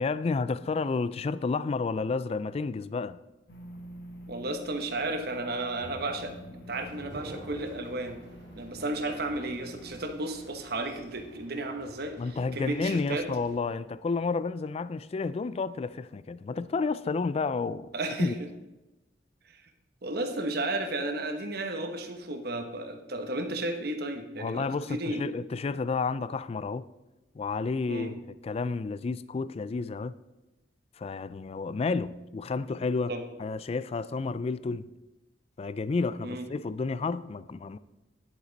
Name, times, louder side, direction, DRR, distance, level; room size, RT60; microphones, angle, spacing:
voice 1, 0.0-3.2 12.2-17.9 18.2-18.3 24.4-26.9 27.3-30.2 31.0-33.1 33.4-34.9 35.6-37.8, left 4 dB, 35° left, 0.3 m, -31 dB
sound 1, 3.5-11.5, equal, 65° left, 1.4 m, -48 dB
voice 2, 4.3-6.3 6.7-8.2 8.5-13.3 17.9-18.3 19.5-19.6 20.0-25.3 27.9-28.1 33.1-33.2 36.2-36.5, right 2 dB, 55° right, 1.1 m, -33 dB
sound 2, 6.8-13.6, right 1 dB, 75° right, 2.6 m, -50 dB
10.5 x 8.2 x 4.0 m
head